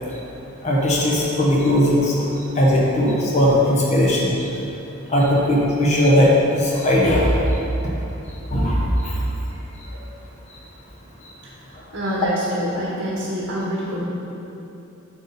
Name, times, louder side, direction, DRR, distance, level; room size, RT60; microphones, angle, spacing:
voice 1, 0.6-2.1 2.6-4.3 5.1-7.3 8.5-8.8, left 1 dB, 35° left, -4 dB, 1.0 m, -18 dB
voice 2, 11.9-14.0, equal, 70° right, -6 dB, 1.4 m, -26 dB
8.2 x 5.3 x 4.2 m, 2.9 s
head